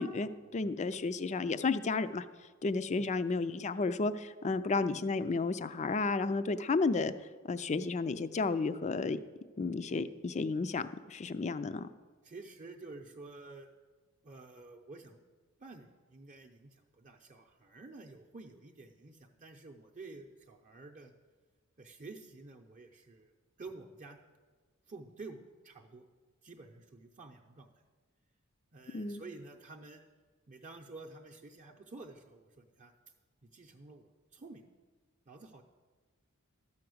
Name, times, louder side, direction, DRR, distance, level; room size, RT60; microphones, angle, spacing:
voice 1, 0.0-2.3 2.6-7.1 7.4-9.2 9.6-11.9 28.9-29.2, left 3 dB, 35° left, 13 dB, 0.4 m, -32 dB
voice 2, 12.2-13.7 14.2-15.2 15.6-21.1 21.8-24.2 24.9-26.1 26.4-27.7 28.7-30.0 30.5-32.9 33.5-34.6 35.3-35.6, right 3 dB, 35° right, 3 dB, 0.7 m, -50 dB
12.5 x 5.8 x 7.8 m, 1.4 s
head